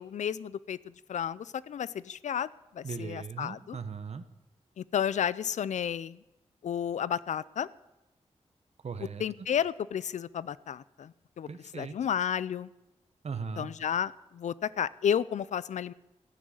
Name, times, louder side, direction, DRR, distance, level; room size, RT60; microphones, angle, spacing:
voice 1, 0.0-2.5 2.7-3.8 4.8-6.2 6.6-7.7 9.2-11.5 11.7-12.7 13.6-15.9, left 8 dB, 80° left, 19 dB, 0.4 m, -32 dB
voice 2, 2.8-4.2 8.8-9.2 11.5-11.9 13.2-13.7, right 5 dB, 65° right, 11 dB, 1.0 m, -38 dB
15.0 x 6.3 x 9.3 m, 0.96 s
cardioid pair, 70°, 12 cm